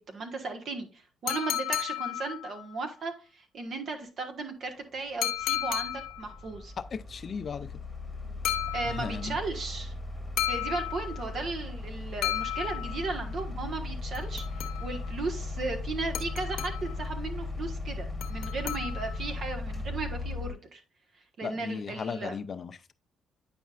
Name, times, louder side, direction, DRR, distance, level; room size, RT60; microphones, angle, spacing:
voice 1, 0.0-6.7 8.7-9.9 10.5-20.8 21.4-22.3, right 3 dB, 60° right, 1.3 m, -36 dB
sound 1, 1.3-2.8 5.2-6.4 8.4-9.3 10.4-11.4 12.2-13.2 14.1-15.1 16.1-17.1 18.2-19.3, left 12 dB, 85° left, 0.7 m, -34 dB
sound 2, 4.8-4.9 5.4-20.5, left 2 dB, 10° left, 1.3 m, -37 dB
voice 2, 6.9-7.7 8.8-9.4 21.4-22.9, left 6 dB, 45° left, 0.4 m, -36 dB
9.1 x 5.2 x 2.4 m
cardioid pair, 90°, 0 cm